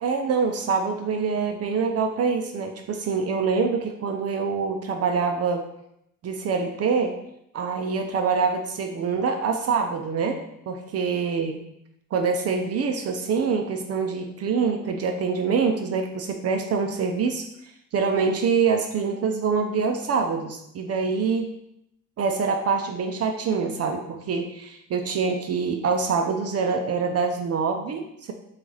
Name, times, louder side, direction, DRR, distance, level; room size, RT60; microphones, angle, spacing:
voice 1, 0.0-5.7 6.2-7.2 7.5-11.6 12.1-17.5 17.9-21.5 22.2-28.3, right 5 dB, 55° right, 5 dB, 0.5 m, -25 dB
6.6 x 2.4 x 3.2 m, 0.79 s
cardioid pair, 90°, 30 cm